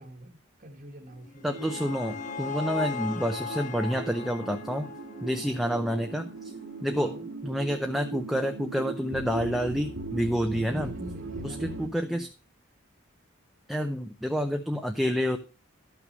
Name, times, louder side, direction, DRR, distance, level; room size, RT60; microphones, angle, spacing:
voice 1, 0.0-1.5 5.3-5.6 7.0-7.3 10.4-12.3, right 1 dB, 40° right, 0 dB, 1.3 m, -45 dB
sound 1, 1.1-6.3, left 5 dB, 40° left, 0.7 m, -38 dB
voice 2, 1.4-4.9 5.2-6.5 6.8-7.1 7.4-10.9 11.4-12.3 13.7-15.4, equal, ahead, 5 dB, 0.5 m, -29 dB
sound 2, 1.4-11.9, right 3 dB, 90° right, 1.8 m, -40 dB
12.0 x 6.0 x 5.3 m, 0.34 s
head